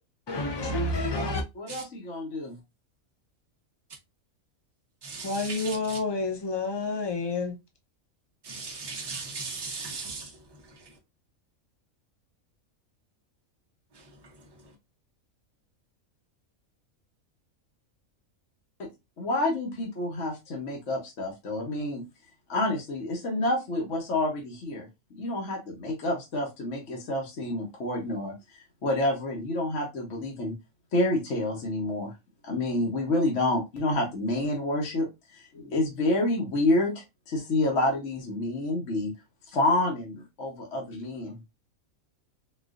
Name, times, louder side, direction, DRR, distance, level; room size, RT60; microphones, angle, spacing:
voice 1, 0.3-1.4 5.2-7.5, left 2 dB, 35° left, 0.4 m, -29 dB
voice 2, 1.1-2.6 19.2-22.0 22.5-24.9 25.1-30.5 30.9-32.1 32.4-35.1 35.4-39.1 39.5-41.4, left 1 dB, 60° left, 1.1 m, -28 dB
voice 3, 5.0-6.0 8.4-10.4 10.6-10.9 13.9-14.1, right 4 dB, 20° right, 0.7 m, -38 dB
4.0 x 2.4 x 2.4 m
omnidirectional pair, 1.5 m